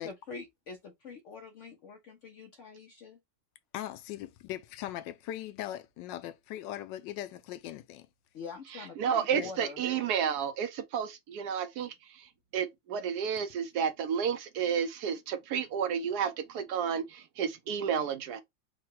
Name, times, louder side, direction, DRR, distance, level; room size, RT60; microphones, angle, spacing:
voice 1, 0.0-3.2 8.3-9.8, left 4 dB, 65° left, 0.7 m, -45 dB
voice 2, 3.7-8.1 9.3-9.5, left 13 dB, 85° left, 1.3 m, -39 dB
voice 3, 9.0-18.4, right 7 dB, 70° right, 1.0 m, -31 dB
3.9 x 2.1 x 4.4 m
omnidirectional pair, 1.9 m